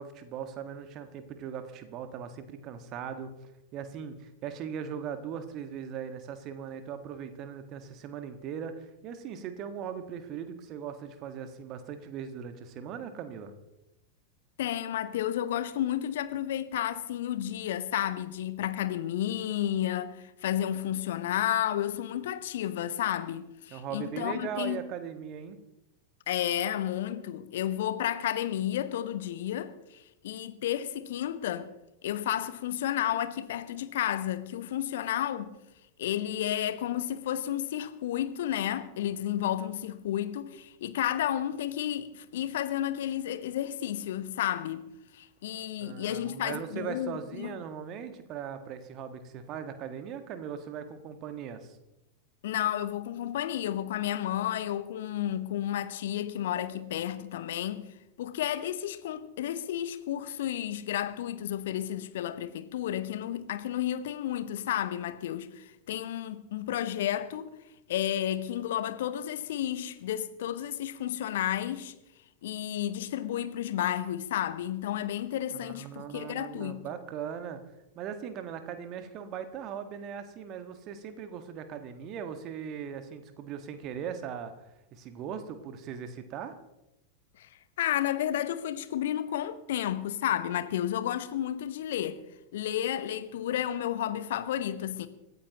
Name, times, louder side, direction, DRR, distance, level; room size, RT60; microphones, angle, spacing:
voice 1, 0.0-13.5 23.7-25.6 45.8-51.8 75.6-77.6 77.9-86.6, right 8 dB, 35° right, 1.6 m, -39 dB
voice 2, 14.6-24.8 26.3-31.7 32.0-35.5 36.0-44.9 45.1-47.6 52.4-57.9 58.2-67.5 67.9-71.9 72.4-76.8 87.4-87.5 87.8-92.2 92.5-95.1, left 11 dB, 55° left, 1.0 m, -32 dB
26.0 x 13.5 x 3.0 m
figure-of-eight pair, 90°, 0 cm